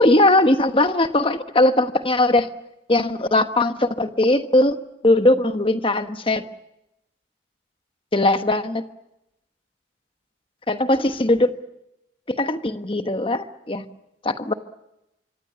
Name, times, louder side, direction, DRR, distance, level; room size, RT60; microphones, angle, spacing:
voice 1, 0.0-2.5 2.9-4.8 5.0-6.4 8.1-8.8 10.7-11.5 12.3-13.8 14.2-14.5, left 2 dB, 30° left, 9 dB, 1.3 m, -19 dB
25.5 x 25.5 x 7.0 m, 0.87 s
head